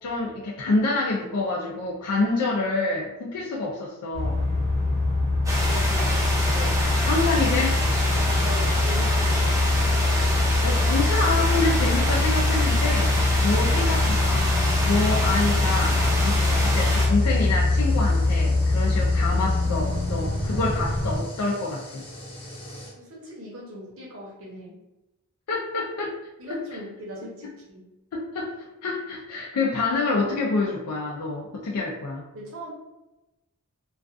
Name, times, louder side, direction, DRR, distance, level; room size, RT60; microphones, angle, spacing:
voice 1, 0.0-4.4 6.5-6.7 7.0-7.8 10.6-13.1 13.4-14.5 14.8-22.1 25.5-26.2 26.5-26.6 28.1-28.5 28.8-32.3, left 3 dB, 80° left, -3 dB, 0.4 m, -27 dB
sound 1, 4.1-21.2, left 2 dB, 50° left, 0.8 m, -23 dB
sound 2, 5.5-17.1, right 1 dB, 15° right, 0.5 m, -27 dB
voice 2, 5.6-6.5 8.4-9.8 13.0-14.0 16.2-16.5 23.0-24.8 26.4-27.8 32.3-32.7, equal, 65° right, -3 dB, 0.8 m, -40 dB
sound 3, 16.0-22.9, left 1 dB, 25° left, 0.7 m, -41 dB
2.4 x 2.3 x 2.4 m, 1.0 s
head